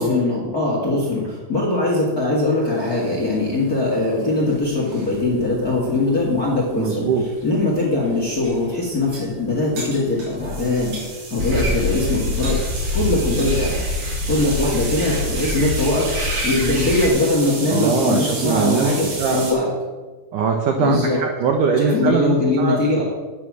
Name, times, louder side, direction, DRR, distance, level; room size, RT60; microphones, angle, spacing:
voice 1, 0.0-7.1 7.4-10.9 11.3-12.6 12.9-13.8 14.3-19.7 20.8-21.2 21.8-23.0, left 2 dB, 35° left, -3 dB, 1.5 m, -21 dB
sound 1, 2.7-19.5, right 2 dB, 65° right, 5.0 m, -33 dB
voice 2, 6.8-7.2 17.7-18.9 19.2-19.5 20.3-22.8, right 6 dB, 85° right, 3 dB, 1.8 m, -21 dB
sound 2, 11.4-17.1, left 1 dB, 30° right, 1.5 m, -25 dB
9.8 x 9.0 x 6.2 m, 1.3 s
omnidirectional pair, 5.1 m